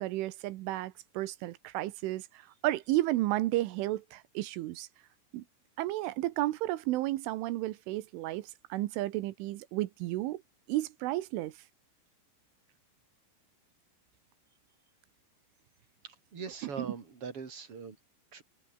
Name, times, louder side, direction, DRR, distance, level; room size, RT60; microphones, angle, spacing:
voice 1, 0.0-4.9 5.3-5.4 5.8-10.4 10.7-11.5 16.8-16.9, right 16 dB, 75° right, 3.3 m, -32 dB
voice 2, 16.0-18.0 18.3-18.4, right 5 dB, 30° right, 3.4 m, -42 dB
omnidirectional pair, 6.0 m